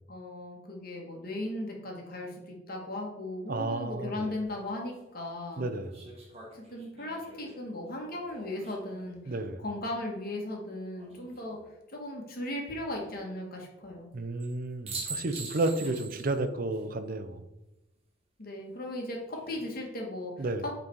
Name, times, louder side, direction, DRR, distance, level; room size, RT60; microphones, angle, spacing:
voice 1, 0.1-5.7 6.5-9.3 9.6-11.6 11.9-14.1 18.4-20.7, left 1 dB, 50° left, 0 dB, 1.8 m, -37 dB
voice 2, 3.5-4.3 5.6-6.0 9.3-9.6 14.1-17.4 20.4-20.6, right 2 dB, 50° right, 9 dB, 0.6 m, -32 dB
sound 1, 4.4-4.5 5.9-9.1 11.0-11.6 14.4-14.5 14.9-16.4 16.7-16.8 19.1-19.6, right 3 dB, 35° right, 1.7 m, -43 dB
9.0 x 4.0 x 4.6 m, 0.95 s
head